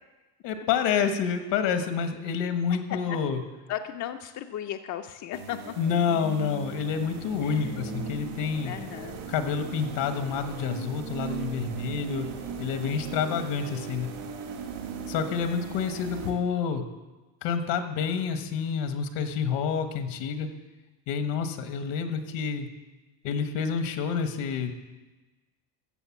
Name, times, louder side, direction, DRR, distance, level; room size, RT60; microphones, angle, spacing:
voice 1, 0.4-3.4 5.8-8.7 9.3-12.3 12.6-14.1 15.1-16.8 17.4-20.5 21.1-22.7 23.2-24.7, left 6 dB, 75° left, 8 dB, 1.4 m, -28 dB
voice 2, 2.3-3.2 3.7-5.6 7.4-7.7 8.6-9.2, left 11 dB, 45° left, 6 dB, 0.5 m, -36 dB
sound 1, 5.3-16.3, right 5 dB, 75° right, 2.3 m, -38 dB
15.0 x 6.7 x 7.2 m, 1.2 s
cardioid pair, 160°, 43 cm